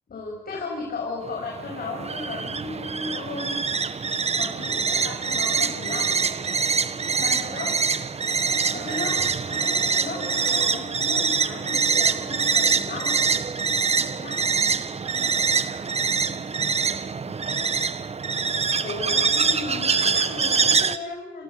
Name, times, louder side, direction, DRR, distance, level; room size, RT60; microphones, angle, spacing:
voice 1, 0.1-3.6 4.3-6.1 7.2-7.7 8.7-13.2 14.2-14.3 18.8-21.4, left 3 dB, 50° left, -1 dB, 7.7 m, -35 dB
sound 1, 1.2-21.0, right 5 dB, 30° right, 1.5 m, -24 dB
voice 2, 7.1-7.7 8.9-9.7 13.3-14.7 15.1-17.6 21.3-21.4, right 4 dB, 50° right, 3 dB, 5.1 m, -47 dB
30.0 x 27.0 x 6.9 m, 0.99 s
cardioid pair, 90°, 20 cm